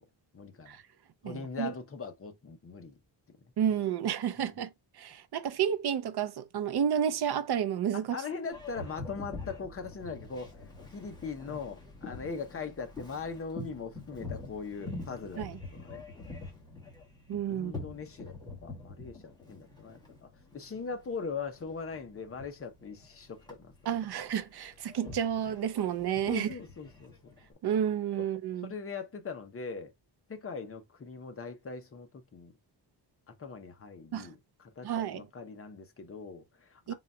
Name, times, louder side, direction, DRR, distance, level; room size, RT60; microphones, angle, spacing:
voice 1, 0.3-0.8 1.2-3.0 4.4-4.6 7.9-16.0 17.4-18.4 18.6-23.7 25.0-25.1 26.3-27.4 28.2-28.3 28.6-29.9 30.3-32.5 33.4-36.9, left 5 dB, 30° left, 0.6 m, -41 dB
voice 2, 1.2-1.7 3.6-4.7 5.0-8.1 15.4-15.6 17.3-17.7 23.9-26.5 27.6-28.7 34.1-34.3 34.8-35.2 36.9-37.0, right 9 dB, 60° right, 0.6 m, -31 dB
Boat Water vehicle, 8.5-27.5, left 3 dB, 10° left, 1.3 m, -46 dB
3.9 x 2.3 x 4.1 m
wide cardioid pair, 180°, 44 cm